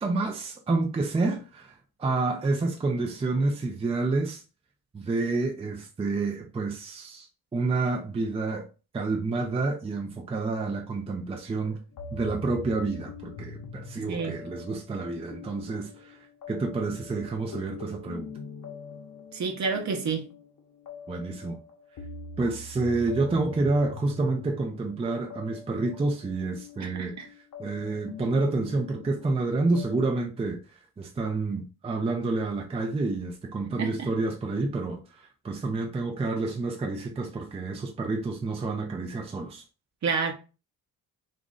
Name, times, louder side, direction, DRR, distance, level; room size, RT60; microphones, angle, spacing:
voice 1, 0.0-1.7 2.0-4.4 4.9-7.3 7.5-8.6 8.9-11.8 12.1-16.2 16.5-18.3 21.1-21.6 22.4-27.2 27.6-30.6 31.0-39.6, right 3 dB, 15° right, 0.4 m, -29 dB
sound 1, 11.9-30.1, left 4 dB, 60° left, 0.9 m, -43 dB
voice 2, 19.3-20.3 26.8-27.3 33.8-34.1 40.0-40.3, right 5 dB, 50° right, 0.8 m, -29 dB
3.0 x 2.5 x 3.6 m
cardioid pair, 140°, 37 cm